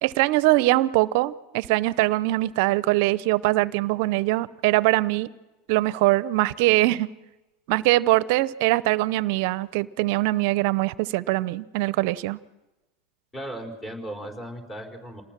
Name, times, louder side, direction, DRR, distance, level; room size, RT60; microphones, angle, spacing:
voice 1, 0.0-5.3 5.7-7.1 7.7-12.4, right 18 dB, 65° right, 19 dB, 0.6 m, -22 dB
voice 2, 13.3-15.2, right 1 dB, 20° left, 2 dB, 4.7 m, -36 dB
27.5 x 19.0 x 6.2 m, 1.1 s
hypercardioid pair, 90°, 0 cm